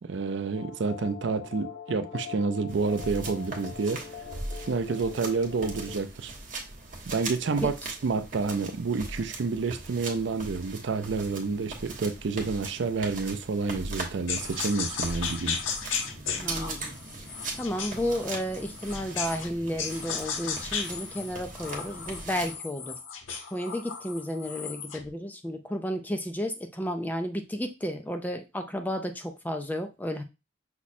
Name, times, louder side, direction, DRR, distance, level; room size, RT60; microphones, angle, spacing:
voice 1, 0.0-4.0 4.7-6.3 7.1-7.7 8.0-15.6, right 4 dB, 70° right, 0.4 m, -29 dB
sound 1, 0.5-6.0, left 7 dB, 45° left, 0.6 m, -43 dB
sound 2, 2.7-22.6, right 2 dB, 40° right, 1.0 m, -40 dB
sound 3, 14.3-19.5 19.8-25.1, left 6 dB, 85° left, 0.7 m, -35 dB
voice 2, 16.4-16.9 17.6-23.0 23.5-30.2, equal, 10° left, 0.3 m, -32 dB
5.9 x 2.1 x 4.2 m
head